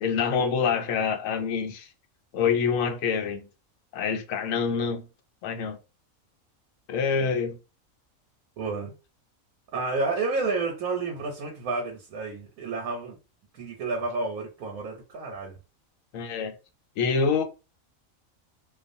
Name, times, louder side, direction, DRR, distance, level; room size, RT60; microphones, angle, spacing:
voice 1, 0.0-1.9 2.3-3.5 3.9-5.1 5.4-5.8 6.9-7.6 16.1-16.5 17.0-17.4, left 6 dB, 75° left, 0.9 m, -26 dB
voice 2, 8.6-8.9 9.7-13.2 13.6-15.6, right 3 dB, 90° right, 1.1 m, -30 dB
2.4 x 2.4 x 2.5 m
omnidirectional pair, 1.4 m